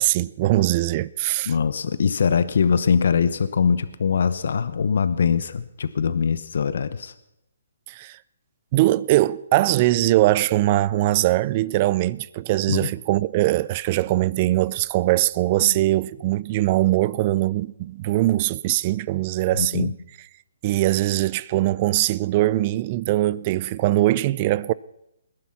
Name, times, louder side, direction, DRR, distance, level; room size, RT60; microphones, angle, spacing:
voice 1, 0.0-1.5 7.9-8.2 8.7-19.9 20.6-24.7, right 16 dB, 30° right, 0.5 m, -21 dB
voice 2, 1.5-7.1 12.7-12.9 15.6-15.8 19.6-19.9, left 6 dB, 65° left, 1.0 m, -22 dB
20.5 x 11.0 x 5.7 m
hypercardioid pair, 160°, 0 cm